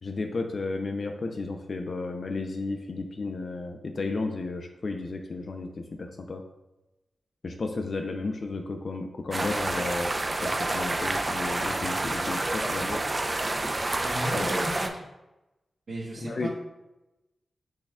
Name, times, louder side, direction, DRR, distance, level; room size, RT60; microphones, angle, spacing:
voice 1, 0.0-5.7 6.0-6.4 7.4-10.1 10.4-13.0 14.4-14.7 16.2-16.5, left 3 dB, 50° left, 4 dB, 0.3 m, -33 dB
sound 1, 9.3-14.9, right 2 dB, 25° right, 0.4 m, -28 dB
voice 2, 14.0-15.0 15.9-16.5, equal, 65° right, -9 dB, 1.0 m, -35 dB
6.2 x 2.2 x 3.5 m, 1.0 s
wide cardioid pair, 120°, 0 cm